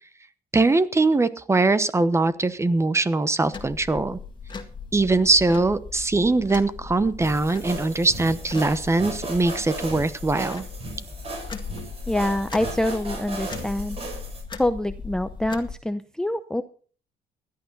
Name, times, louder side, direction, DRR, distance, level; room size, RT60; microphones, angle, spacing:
voice 1, 0.5-4.2 4.9-10.6, right 3 dB, 15° right, 14 dB, 1.0 m, -21 dB
sound 1, 3.5-15.8, left 5 dB, 25° left, 2.0 m, -38 dB
sound 2, 7.2-14.4, right 2 dB, 35° right, 6.3 m, -36 dB
voice 2, 12.1-14.0 14.6-16.6, left 1 dB, 5° left, 10 dB, 0.6 m, -25 dB
16.5 x 11.5 x 4.0 m, 0.42 s
cardioid pair, 110°, 17 cm